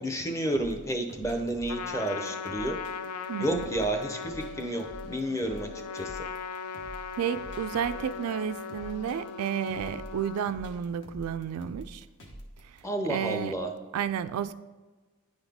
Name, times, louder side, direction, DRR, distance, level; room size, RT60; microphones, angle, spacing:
voice 1, 0.0-2.8 3.4-6.3 12.8-13.7, right 1 dB, 15° left, 5 dB, 0.6 m, -31 dB
sound 1, 0.5-12.8, equal, 55° left, 1.0 m, -47 dB
Trumpet, 1.7-10.5, left 6 dB, 90° left, 0.4 m, -39 dB
voice 2, 3.3-3.6 7.2-12.0 12.6-12.8 13.1-13.6 13.9-14.5, right 8 dB, 85° right, 12 dB, 0.3 m, -32 dB
9.8 x 4.0 x 3.5 m, 1.3 s
head